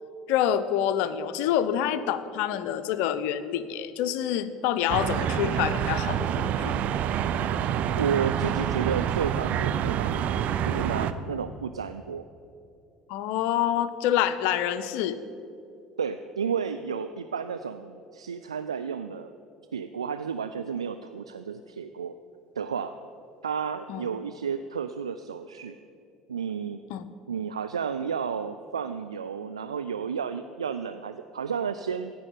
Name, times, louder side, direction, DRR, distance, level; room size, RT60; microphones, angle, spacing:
voice 1, 0.3-6.8 13.1-15.2 23.9-24.0 26.9-27.0, left 10 dB, 65° left, 13 dB, 0.7 m, -27 dB
sound 1, 4.9-11.1, right 9 dB, 55° right, 0.6 m, -27 dB
voice 2, 7.9-10.3 10.7-12.2 16.0-19.3 19.7-22.1 22.6-22.9 23.4-25.8 26.3-26.8 27.3-32.1, right 6 dB, 90° right, 10 dB, 0.3 m, -32 dB
16.0 x 5.6 x 9.0 m, 2.6 s
hypercardioid pair, 65°, 3 cm